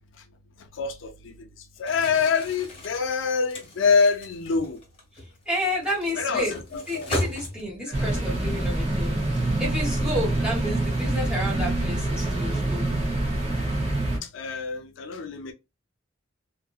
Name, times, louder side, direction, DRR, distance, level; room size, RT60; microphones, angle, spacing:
voice 1, 0.7-1.3 1.8-4.8 6.2-7.1 7.8-8.2 14.2-15.5, left 5 dB, 70° left, 0.4 m, -26 dB
Crumpling crinkling, 1.8-8.0, left 1 dB, 30° left, 1.1 m, -36 dB
voice 2, 5.4-6.6 6.9-12.9, equal, 5° right, 1.2 m, -31 dB
sound 1, 7.9-14.2, right 1 dB, 30° right, 1.0 m, -26 dB
2.6 x 2.5 x 2.4 m
head